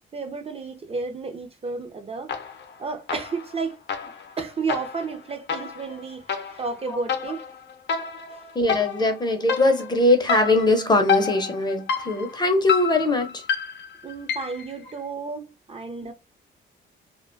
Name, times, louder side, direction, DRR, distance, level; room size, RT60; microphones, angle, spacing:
voice 1, 0.1-2.3 2.8-4.1 4.4-6.2 6.5-7.4 8.3-8.5 14.0-16.1, right 4 dB, 30° right, 0.5 m, -32 dB
sound 1, 2.3-2.8 3.1-14.7, left 6 dB, 65° left, 0.6 m, -30 dB
voice 2, 8.6-13.4, left 2 dB, 20° left, 0.5 m, -21 dB
2.3 x 2.2 x 2.5 m
cardioid pair, 90°, 20 cm